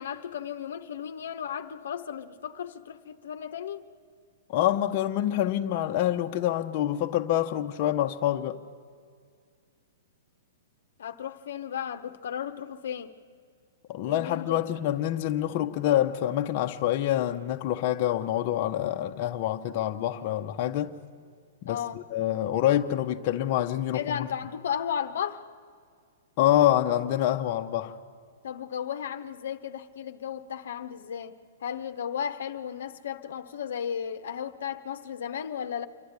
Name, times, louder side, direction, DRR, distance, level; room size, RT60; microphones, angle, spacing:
voice 1, 0.0-3.8 11.0-13.1 14.0-14.6 21.7-22.0 23.9-25.4 28.4-31.3 31.6-35.9, left 8 dB, 75° left, 0.9 m, -34 dB
voice 2, 4.5-8.6 13.9-20.9 21.6-24.3 26.4-28.0, left 12 dB, 45° left, 0.9 m, -26 dB
26.5 x 11.5 x 9.6 m
hypercardioid pair, 130°, 0 cm